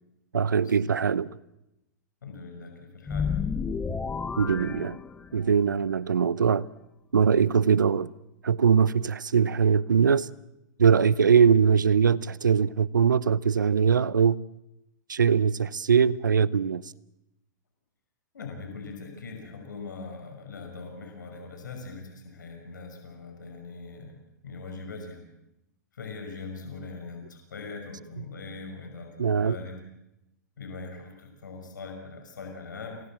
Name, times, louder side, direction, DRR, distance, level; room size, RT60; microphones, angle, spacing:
voice 1, 0.3-1.3 4.4-5.0 5.3-6.6 7.1-8.1 8.4-10.3 10.8-14.4 15.1-16.8 29.2-29.6, right 6 dB, 90° right, 20 dB, 0.8 m, -22 dB
voice 2, 2.2-3.3 18.3-25.2 25.9-29.8 30.6-33.0, left 4 dB, 80° left, 3 dB, 5.9 m, -41 dB
sound 1, 3.0-5.6, left 6 dB, 10° left, 1.1 m, -31 dB
28.5 x 18.0 x 7.5 m, 0.89 s
hypercardioid pair, 120°, 10 cm